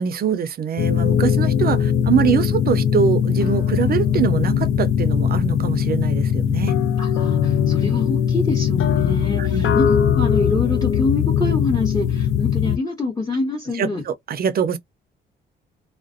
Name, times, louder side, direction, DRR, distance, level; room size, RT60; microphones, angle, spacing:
voice 1, 0.0-6.7 9.4-9.7 13.8-14.8, right 7 dB, 50° right, 0.5 m, -23 dB
sound 1, 0.8-12.8, left 8 dB, 80° left, 0.5 m, -20 dB
voice 2, 7.0-14.0, left 3 dB, 20° left, 1.1 m, -26 dB
2.4 x 2.1 x 2.5 m
cardioid pair, 90°, 20 cm